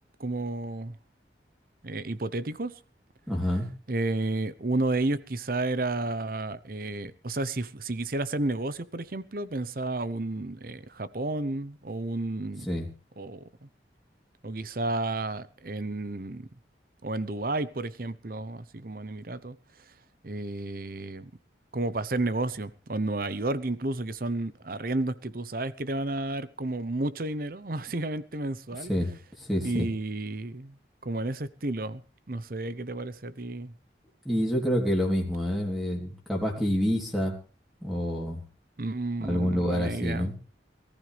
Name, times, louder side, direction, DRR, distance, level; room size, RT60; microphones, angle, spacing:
voice 1, 0.2-1.0 1.8-2.7 3.9-12.7 13.2-13.4 14.4-16.5 17.0-19.6 20.2-21.3 21.7-28.9 29.6-30.7 31.0-32.0 32.3-33.7 38.8-40.3, right 2 dB, 50° right, 0.8 m, -31 dB
voice 2, 3.3-3.7 12.6-12.8 28.9-29.1 29.4-29.9 34.2-37.3 37.8-38.4 39.2-40.3, equal, ahead, 3.2 m, -27 dB
23.0 x 14.0 x 3.4 m
head